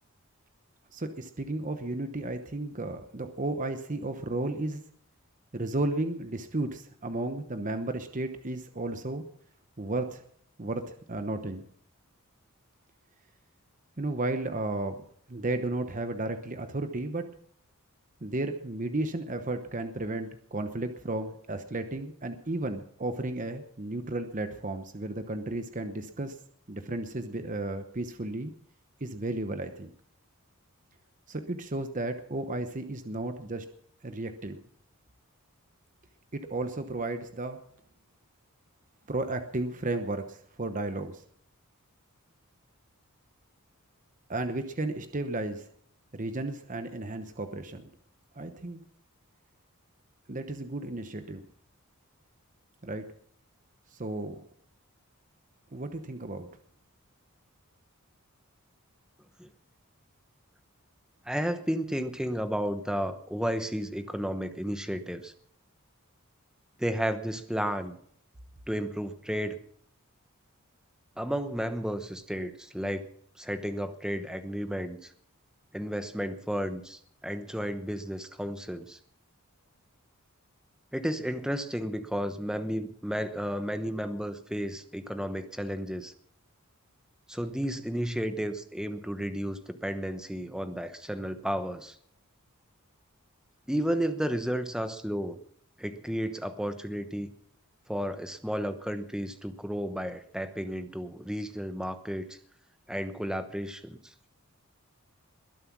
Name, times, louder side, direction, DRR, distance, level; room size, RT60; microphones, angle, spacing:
voice 1, 0.9-4.8 5.5-9.2 9.8-10.2 10.6-11.6 14.0-17.3 18.2-26.4 26.7-28.5 29.0-29.9 31.3-33.7 34.0-34.6 36.3-37.6 39.1-41.2 44.3-45.7 46.1-47.8 48.4-48.8 50.3-51.4 52.8-53.1 53.9-54.4 55.7-56.5, right 2 dB, 35° right, 8 dB, 0.9 m, -33 dB
voice 2, 61.2-65.3 66.8-68.0 68.7-69.6 71.2-73.1 73.4-75.1 75.7-79.0 80.9-86.1 87.3-92.0 93.7-95.4 95.8-97.3 97.9-102.4 102.9-104.1, equal, 5° right, 9 dB, 0.9 m, -32 dB
21.5 x 7.7 x 6.1 m, 0.63 s
head